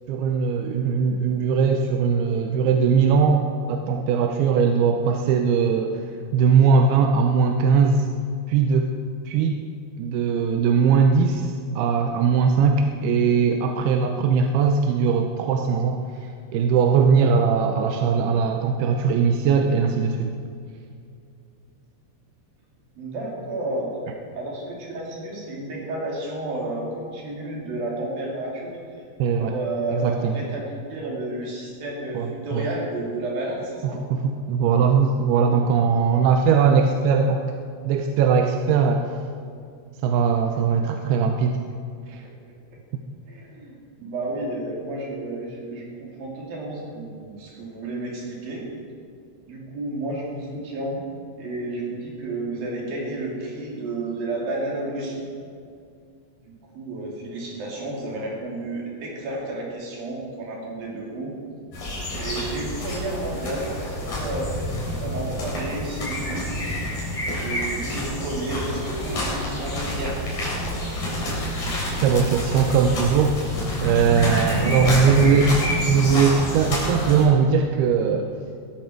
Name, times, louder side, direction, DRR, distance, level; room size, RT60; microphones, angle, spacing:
voice 1, 0.1-6.1 6.3-8.1 8.5-8.9 9.3-9.6 10.0-16.0 16.5-20.4 29.2-29.5 29.9-30.4 32.1-32.7 34.1-37.5 37.9-39.0 40.0-41.6 42.1-42.2 72.0-75.5 75.9-78.3, right 6 dB, 75° right, 4 dB, 2.5 m, -20 dB
voice 2, 23.0-23.9 24.3-28.8 29.4-34.0 43.3-48.7 49.5-51.0 51.4-55.2 56.5-61.3 62.0-66.6 67.4-70.2 74.6-75.2, right 2 dB, 55° right, -3 dB, 4.7 m, -31 dB
sound 1, 61.7-77.2, equal, 45° left, 5.2 m, -28 dB
20.0 x 13.0 x 4.6 m, 2.4 s
omnidirectional pair, 5.0 m